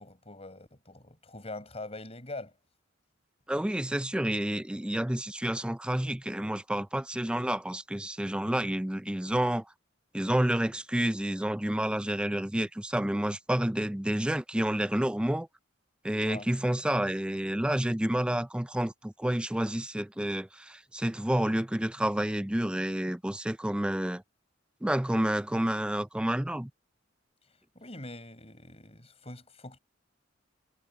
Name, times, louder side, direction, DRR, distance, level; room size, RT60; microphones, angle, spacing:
voice 1, 0.0-2.6 16.2-16.5 27.5-29.8, left 2 dB, 30° left, 7.1 m, -43 dB
voice 2, 3.5-9.7 10.1-15.5 16.0-24.2 24.8-26.7, right 1 dB, 5° right, 0.4 m, -29 dB
head